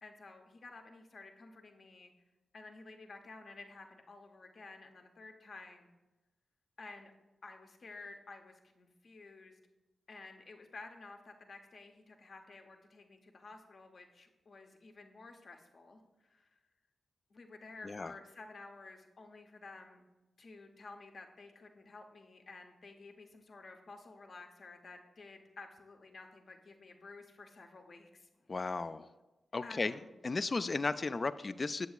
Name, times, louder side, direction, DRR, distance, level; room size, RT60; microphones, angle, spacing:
voice 1, 0.0-2.1 2.5-5.9 6.8-7.1 7.4-9.6 10.1-16.6 17.3-20.0 20.4-28.3 29.6-30.1, left 3 dB, 60° left, 4 dB, 0.8 m, -52 dB
voice 2, 28.5-29.1 29.5-29.9 30.2-31.9, left 3 dB, 45° left, 14 dB, 0.3 m, -35 dB
8.1 x 7.0 x 2.4 m, 1.1 s
supercardioid pair, 40°, 0 cm